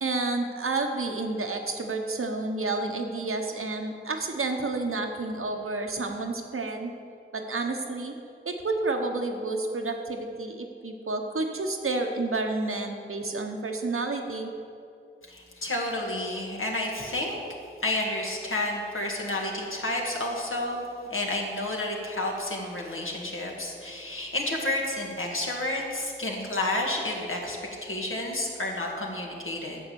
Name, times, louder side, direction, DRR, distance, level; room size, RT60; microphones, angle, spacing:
voice 1, 0.0-6.9 7.3-8.1 8.4-14.5, right 3 dB, 90° right, 3 dB, 1.1 m, -30 dB
voice 2, 15.3-17.4 17.8-29.8, left 1 dB, 80° left, -1 dB, 1.8 m, -30 dB
9.5 x 7.1 x 7.0 m, 2.5 s
wide cardioid pair, 45°, 21 cm